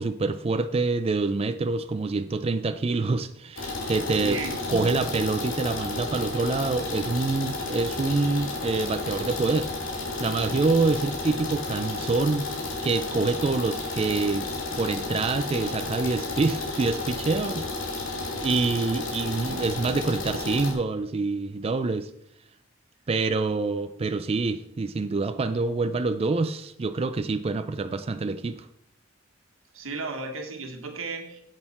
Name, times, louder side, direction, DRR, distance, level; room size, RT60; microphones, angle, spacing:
voice 1, 0.0-4.4 4.7-9.7 10.2-12.4 12.8-14.5 14.8-17.7 18.4-22.1 23.1-28.7, right 3 dB, 30° right, 9 dB, 0.4 m, -26 dB
sound 1, 3.6-20.7, left 3 dB, 70° left, 2.4 m, -32 dB
voice 2, 4.2-5.0 19.4-19.7 29.7-31.4, right 3 dB, 90° right, 4 dB, 1.6 m, -34 dB
9.0 x 7.8 x 4.2 m, 0.72 s
head